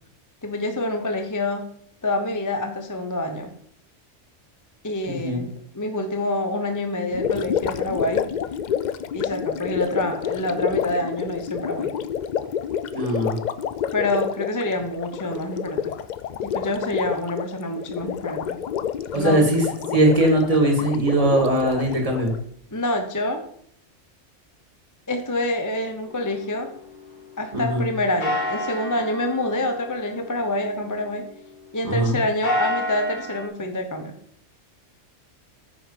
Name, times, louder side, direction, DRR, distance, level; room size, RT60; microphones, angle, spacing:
voice 1, 0.4-1.6 2.0-3.5 4.8-8.3 9.1-11.9 13.9-15.9 16.4-18.6 19.1-19.4 22.7-23.4 25.1-26.7 27.4-31.3 31.7-34.1, left 1 dB, 15° left, 5 dB, 0.8 m, -27 dB
voice 2, 5.1-5.4 12.9-13.4 19.1-19.6 19.9-22.3 27.5-27.8 31.8-32.2, right 1 dB, 30° right, 1 dB, 2.2 m, -20 dB
Gurgling, 7.1-22.4, left 8 dB, 70° left, 0.4 m, -29 dB
sound 1, 26.1-27.8 28.2-31.7 32.2-33.5, left 1 dB, 40° left, 1.8 m, -31 dB
9.3 x 5.7 x 5.1 m, 0.65 s
omnidirectional pair, 1.3 m